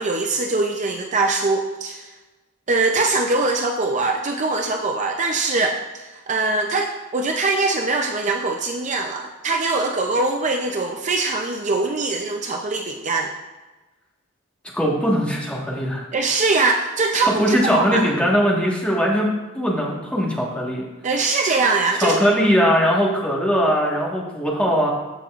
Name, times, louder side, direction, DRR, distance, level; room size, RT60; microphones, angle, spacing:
voice 1, 0.0-2.1 2.7-13.3 16.1-18.1 21.0-22.2, right 3 dB, 35° right, 3 dB, 0.5 m, -22 dB
voice 2, 14.7-16.0 17.2-19.3 19.5-20.8 21.9-24.9, equal, 5° left, -3 dB, 1.5 m, -20 dB
14.0 x 5.4 x 2.4 m, 1.2 s
head